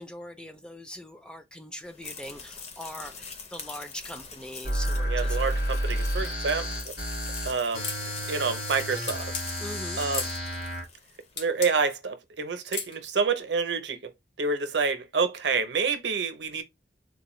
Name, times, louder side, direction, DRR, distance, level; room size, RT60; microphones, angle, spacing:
voice 1, 0.0-5.4 5.9-6.1 9.6-10.0, left 1 dB, 5° left, 0.4 m, -41 dB
sound 1, 1.8-11.4, left 5 dB, 40° left, 0.7 m, -44 dB
sound 2, 4.6-10.8, equal, 60° left, 1.8 m, -31 dB
voice 2, 5.1-6.7 7.4-7.9 8.3-9.3 10.0-10.3 11.4-14.1 14.4-16.6, right 5 dB, 75° right, 0.6 m, -28 dB
sound 3, 7.8-8.1 9.1-9.5 10.1-10.3 11.4-11.7 12.7-13.0, left 5 dB, 85° left, 1.1 m, -33 dB
3.8 x 2.1 x 3.0 m
head